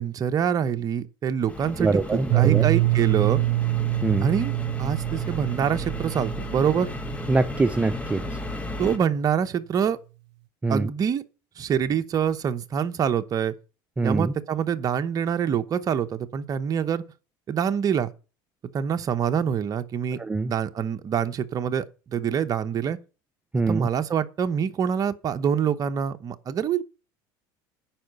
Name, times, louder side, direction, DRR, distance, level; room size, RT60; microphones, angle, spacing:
voice 1, 0.0-3.4 4.2-6.9 8.8-10.0 10.7-11.2 11.6-13.5 14.0-17.0 17.5-18.1 18.7-20.2 20.4-23.0 23.5-26.8, right 8 dB, 35° right, 0.9 m, -25 dB
sound 1, 1.5-9.0, left 2 dB, 10° left, 1.3 m, -35 dB
voice 2, 1.8-2.6 4.0-4.3 7.3-8.4 10.6-10.9 14.0-14.3 20.2-20.5 23.5-23.9, right 3 dB, 15° right, 0.4 m, -24 dB
Piano, 2.3-7.9, right 20 dB, 70° right, 0.4 m, -25 dB
10.0 x 4.9 x 6.5 m
supercardioid pair, 115°, 10 cm